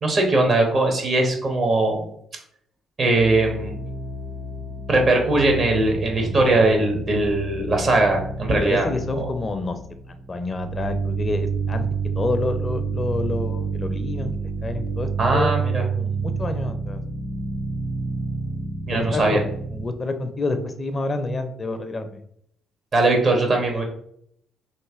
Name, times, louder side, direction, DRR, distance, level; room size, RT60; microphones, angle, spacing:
voice 1, 0.0-2.0 3.0-3.8 4.9-8.8 15.2-15.8 18.9-19.4 22.9-23.8, right 2 dB, 50° right, 2 dB, 1.2 m, -20 dB
sound 1, 3.2-19.9, right 4 dB, 30° right, 1.0 m, -29 dB
voice 2, 8.5-9.8 10.1-11.9 12.2-15.5 16.0-17.0 18.9-19.4 19.7-22.2 23.7-23.8, left 3 dB, 35° left, 8 dB, 0.5 m, -28 dB
3.1 x 2.7 x 3.6 m, 0.69 s
hypercardioid pair, 50°, 0 cm